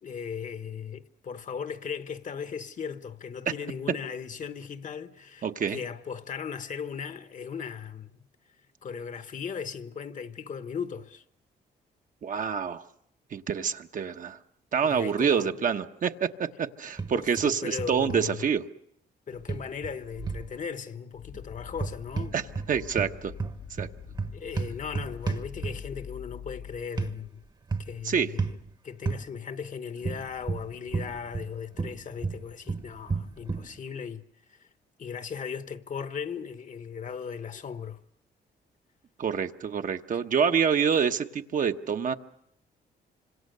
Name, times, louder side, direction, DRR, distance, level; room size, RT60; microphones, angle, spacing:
voice 1, 0.0-8.1 8.8-11.2 14.8-15.7 17.1-18.5 19.3-22.3 24.3-27.4 27.8-28.6 28.8-34.7 35.0-38.0, left 6 dB, 45° left, 1.2 m, -37 dB
voice 2, 5.4-5.8 12.2-12.8 13.3-14.4 14.7-18.6 22.3-22.4 22.7-23.3 23.8-23.9 28.0-28.3 39.2-42.1, right 7 dB, 50° right, 1.1 m, -27 dB
sound 1, 17.0-17.5 17.8-18.2 19.5-20.5 21.7-22.7 23.0-26.0 27.0-27.1 27.7-28.0 28.4-28.6 29.1-29.2 30.0-31.5 31.8-33.7, right 4 dB, 25° right, 1.1 m, -32 dB
sound 2, 21.1-26.9, left 8 dB, 85° left, 1.5 m, -44 dB
26.5 x 26.0 x 6.7 m
cardioid pair, 105°, 18 cm